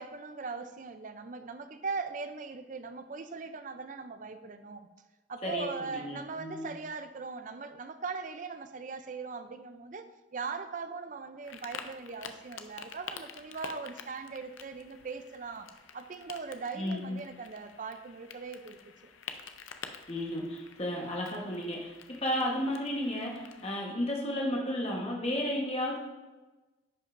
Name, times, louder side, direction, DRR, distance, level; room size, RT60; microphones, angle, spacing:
voice 1, 0.0-4.8 5.3-18.8, right 4 dB, 40° right, 9 dB, 0.4 m, -40 dB
voice 2, 5.4-6.7 16.8-17.2 20.1-21.9 22.2-26.0, left 1 dB, 30° left, -1 dB, 1.1 m, -33 dB
sound 1, 11.4-23.7, left 6 dB, 85° left, 0.5 m, -48 dB
10.5 x 5.3 x 2.6 m, 1.1 s
head